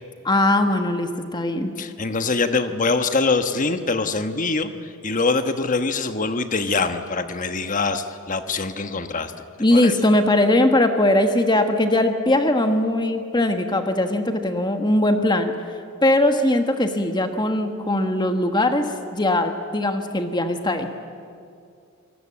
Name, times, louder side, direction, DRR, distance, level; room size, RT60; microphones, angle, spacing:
voice 1, 0.2-1.7 9.6-15.5 16.0-20.9, left 1 dB, 20° left, 6 dB, 1.4 m, -20 dB
voice 2, 1.8-9.4 9.7-9.9, left 3 dB, 40° left, 8 dB, 1.2 m, -24 dB
27.0 x 19.0 x 8.7 m, 2.4 s
head